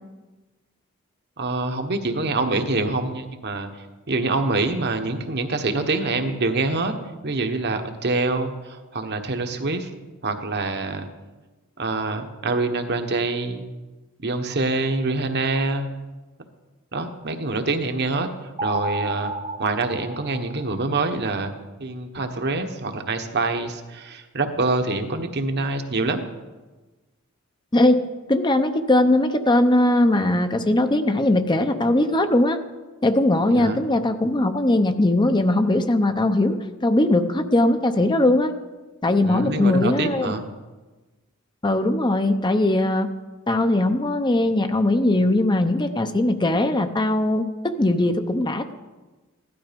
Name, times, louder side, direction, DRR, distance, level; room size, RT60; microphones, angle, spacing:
voice 1, 1.4-6.9 7.2-9.9 10.2-11.1 11.8-13.6 14.2-15.9 16.9-19.3 19.6-21.5 21.8-26.2 33.5-33.8 39.2-40.4, right 3 dB, 55° right, 6 dB, 1.3 m, -25 dB
sound 1, 18.6-21.0, right 2 dB, 25° right, 0.6 m, -31 dB
voice 2, 28.3-32.6 33.0-38.5 39.0-40.3 41.6-43.1 43.5-48.7, left 1 dB, 20° left, 8 dB, 0.7 m, -20 dB
16.0 x 12.0 x 5.3 m, 1.2 s
head